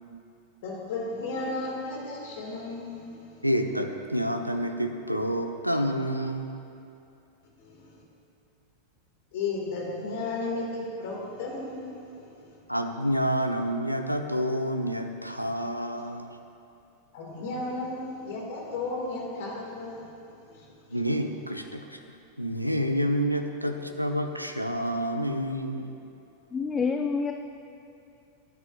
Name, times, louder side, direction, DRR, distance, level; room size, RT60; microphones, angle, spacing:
voice 1, 0.6-3.5 7.6-8.0 9.3-12.6 17.1-21.0, left 3 dB, 55° left, -2 dB, 2.1 m, -34 dB
voice 2, 3.4-6.5 12.7-16.3 17.5-17.6 20.9-22.0 22.4-25.9, equal, 90° right, 6 dB, 0.7 m, -28 dB
voice 3, 26.5-27.3, left 5 dB, 20° left, 5 dB, 0.5 m, -27 dB
18.5 x 9.7 x 2.5 m, 2.7 s
figure-of-eight pair, 90°, 0 cm